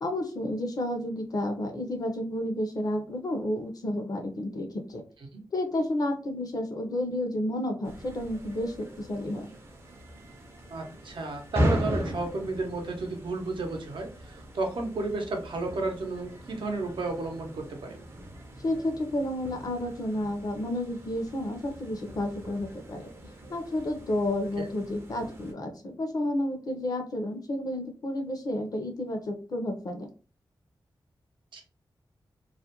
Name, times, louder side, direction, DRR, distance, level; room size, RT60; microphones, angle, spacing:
voice 1, 0.0-5.0 5.5-9.5 18.6-23.0 23.5-30.1, left 1 dB, 50° left, 5 dB, 0.5 m, -31 dB
sound 1, 7.8-25.5, equal, 30° right, 0.5 m, -38 dB
voice 2, 10.7-18.0 24.6-24.7 31.5-31.6, right 2 dB, 75° right, 2 dB, 0.7 m, -33 dB
2.4 x 2.1 x 2.8 m, 0.35 s
wide cardioid pair, 145°, 8 cm